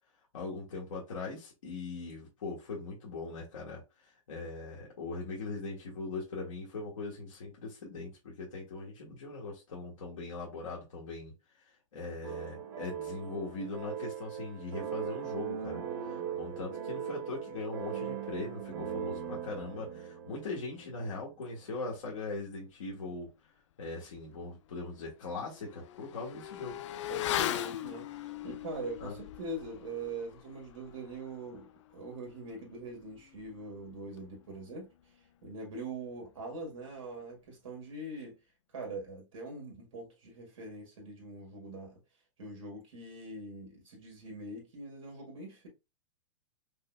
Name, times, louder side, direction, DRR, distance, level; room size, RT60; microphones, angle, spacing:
voice 1, 0.3-11.3 11.9-23.3 23.8-26.8 29.0-29.1, left 3 dB, 85° left, 1.5 m, -40 dB
sound 1, 12.2-21.3, right 8 dB, 60° right, 0.9 m, -39 dB
Motorcycle / Accelerating revving vroom, 24.2-24.3 24.7-34.7 34.9-35.0, left 12 dB, 65° left, 0.4 m, -40 dB
voice 2, 27.1-34.9 35.4-38.4 38.7-42.0 42.4-45.7, right 2 dB, 90° right, 1.7 m, -43 dB
5.2 x 2.1 x 2.3 m
hypercardioid pair, 135°, 16 cm